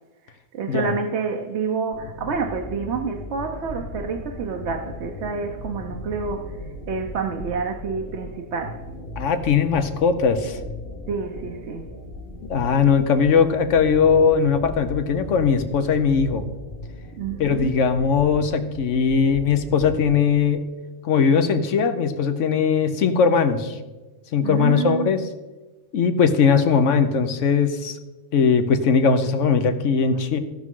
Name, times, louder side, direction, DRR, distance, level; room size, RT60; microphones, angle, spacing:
voice 1, 0.5-6.6 6.9-8.8 11.1-11.9 17.2-17.8 24.4-25.1, right 5 dB, 65° right, 3 dB, 1.0 m, -28 dB
sound 1, 1.9-20.4, left 1 dB, 50° left, 1.9 m, -37 dB
voice 2, 9.2-10.6 12.5-16.4 17.4-20.6 21.0-23.8 24.3-25.2 25.9-28.0 28.3-30.4, left 6 dB, 75° left, 9 dB, 1.2 m, -19 dB
16.5 x 6.2 x 3.7 m, 1.2 s
omnidirectional pair, 1.3 m